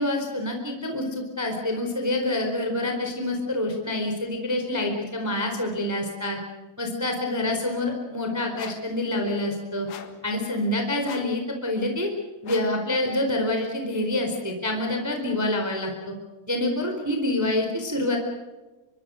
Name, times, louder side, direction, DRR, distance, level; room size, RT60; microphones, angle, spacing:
voice 1, 0.0-6.4 6.8-9.9 10.2-12.1 12.4-16.1 16.5-18.2, left 1 dB, 5° right, 3 dB, 3.6 m, -27 dB
sound 1, 8.5-8.9 9.9-10.3 11.0-11.4 12.4-12.8, left 8 dB, 65° left, 3.3 m, -42 dB
26.0 x 24.0 x 6.5 m, 1.2 s
omnidirectional pair, 4.9 m